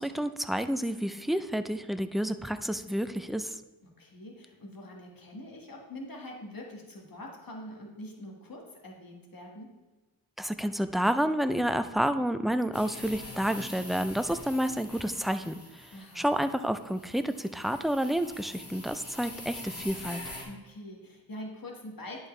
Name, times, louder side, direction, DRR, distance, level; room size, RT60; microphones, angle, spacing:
voice 1, 0.0-3.5 10.4-15.6 16.2-20.2, equal, ahead, 10 dB, 0.4 m, -29 dB
voice 2, 3.8-9.7 15.9-16.3 20.5-22.3, left 1 dB, 55° left, 0 dB, 1.7 m, -44 dB
sound 1, 12.7-20.4, left 1 dB, 35° left, 2.1 m, -45 dB
11.0 x 4.7 x 3.2 m, 1.2 s
cardioid pair, 45°, 40 cm